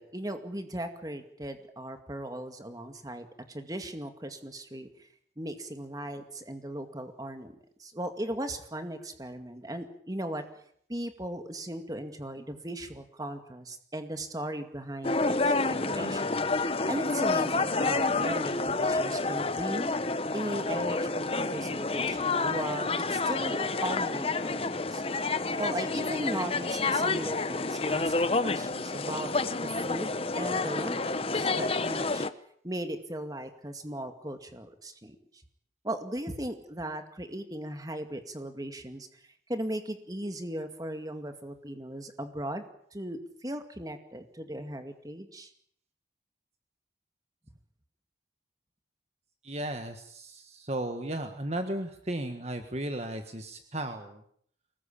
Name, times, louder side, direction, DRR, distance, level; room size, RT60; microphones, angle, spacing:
voice 1, 0.0-5.1 5.4-10.4 10.9-16.4 16.9-19.9 20.3-25.0 25.6-32.3 32.6-35.4 35.8-39.2 39.5-42.6 42.9-45.5, right 1 dB, 20° right, 7 dB, 2.2 m, -37 dB
sound 1, 15.0-32.3, left 3 dB, 30° left, 1.0 m, -29 dB
voice 2, 49.4-54.2, right 1 dB, 35° right, 7 dB, 1.6 m, -35 dB
24.0 x 20.0 x 8.6 m, 0.64 s
head